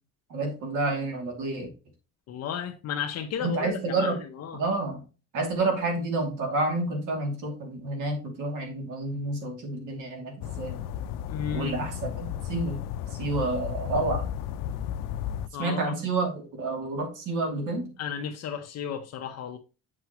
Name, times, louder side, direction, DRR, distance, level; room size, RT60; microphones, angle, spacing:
voice 1, 0.3-1.7 3.4-4.2 4.5-5.0 5.3-10.8 11.5-12.8 13.1-14.3 15.6-17.9, right 2 dB, 70° right, 2.7 m, -29 dB
voice 2, 2.3-4.6 11.3-11.8 15.5-16.0 18.0-19.6, left 8 dB, 50° left, 0.8 m, -34 dB
sound 1, 10.4-15.5, left 10 dB, 80° left, 0.6 m, -34 dB
7.6 x 5.7 x 3.0 m
cardioid pair, 160°, 32 cm